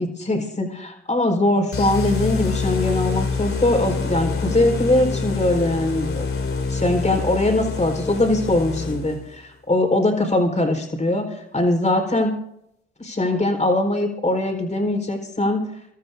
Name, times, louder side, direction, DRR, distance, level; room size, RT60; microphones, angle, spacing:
voice 1, 0.0-6.3 6.7-12.3 13.0-15.7, left 2 dB, 25° left, 2 dB, 4.5 m, -21 dB
sound 1, 1.7-9.4, left 4 dB, 45° left, 2.8 m, -26 dB
28.5 x 13.0 x 2.7 m, 0.78 s
supercardioid pair, 60°, 30 cm